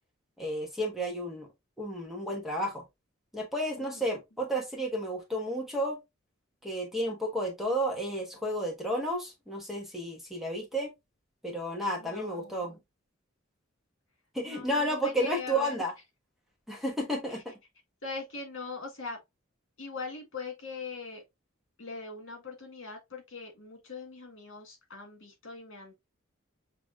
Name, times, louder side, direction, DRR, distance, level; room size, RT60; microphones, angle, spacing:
voice 1, 0.4-1.5 1.8-2.8 3.3-6.0 6.6-10.9 11.4-12.8 14.3-15.9 16.7-17.5, equal, ahead, 1.2 m, -32 dB
voice 2, 3.8-4.1 12.0-12.8 14.4-15.8 17.3-17.4 18.0-19.2 19.8-21.2 21.8-25.9, left 4 dB, 70° left, 2.0 m, -41 dB
6.8 x 3.0 x 2.3 m
head